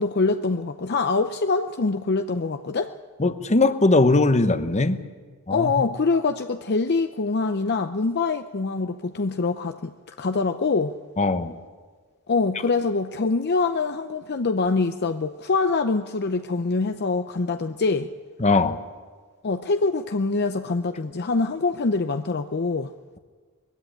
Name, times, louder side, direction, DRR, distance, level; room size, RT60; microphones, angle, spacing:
voice 1, 0.0-2.9 5.5-10.9 12.3-18.1 19.4-22.9, left 3 dB, 50° left, 8 dB, 0.6 m, -24 dB
voice 2, 3.2-5.0 5.5-5.9 11.2-11.6 18.4-18.8, left 2 dB, 30° left, 11 dB, 0.9 m, -20 dB
21.0 x 15.5 x 10.0 m, 1.5 s
head